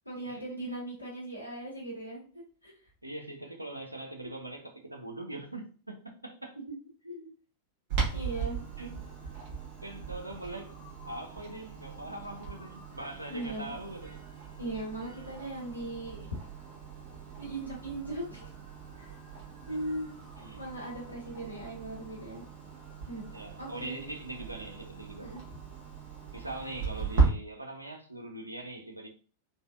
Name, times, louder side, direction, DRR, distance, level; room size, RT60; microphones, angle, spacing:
voice 1, 0.0-2.3 2.6-2.7 6.7-6.8 7.0-7.3 8.1-8.6 13.3-13.7 14.6-16.4 17.4-18.5 19.7-20.2 20.6-22.4 23.1-23.2 23.6-24.0 25.2-25.4, right 1 dB, 90° left, 1.1 m, -38 dB
voice 2, 3.0-6.6 8.8-9.0 9.8-14.3 20.4-20.6 23.3-25.4 26.3-29.1, right 2 dB, 85° right, 0.5 m, -42 dB
Clock, 7.9-27.3, right 5 dB, 45° right, 1.2 m, -37 dB
3.3 x 2.2 x 2.3 m
figure-of-eight pair, 90°, 0 cm